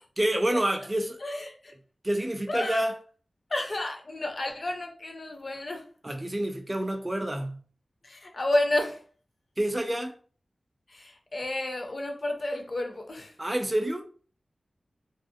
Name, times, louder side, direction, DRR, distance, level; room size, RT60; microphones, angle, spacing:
voice 1, 0.2-1.2 2.0-3.0 6.0-7.6 9.6-10.2 13.4-14.0, right 1 dB, 20° right, 0.4 m, -28 dB
voice 2, 1.2-1.7 2.5-2.8 3.5-5.9 8.0-9.0 10.9-13.3, left 1 dB, 50° left, 0.5 m, -31 dB
2.4 x 2.1 x 2.6 m
wide cardioid pair, 85°, 0 cm